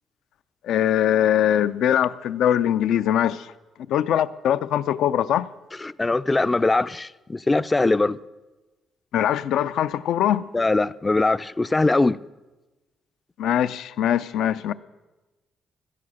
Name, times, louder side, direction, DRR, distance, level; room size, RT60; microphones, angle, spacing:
voice 1, 0.6-3.5 3.9-5.5 9.1-10.5 13.4-14.7, left 10 dB, 80° left, 0.5 m, -22 dB
voice 2, 5.8-8.2 10.5-12.2, left 2 dB, 20° left, 0.4 m, -21 dB
16.5 x 12.5 x 6.4 m
cardioid pair, 90°, 0 cm